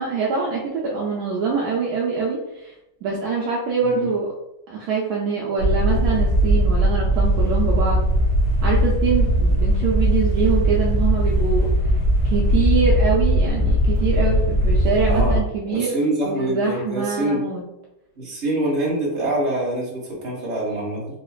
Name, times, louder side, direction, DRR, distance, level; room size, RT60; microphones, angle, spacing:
voice 1, 0.0-2.7 3.0-4.3 4.7-8.1 8.6-11.7 12.2-16.0 16.2-17.6, right 5 dB, 70° right, -3 dB, 0.9 m, -24 dB
sound 1, 5.6-15.4, equal, 70° left, 1.6 m, -19 dB
voice 2, 15.0-15.4 15.7-17.4 18.2-21.0, right 1 dB, 40° right, -4 dB, 1.4 m, -25 dB
4.2 x 2.8 x 2.4 m, 0.88 s
omnidirectional pair, 2.1 m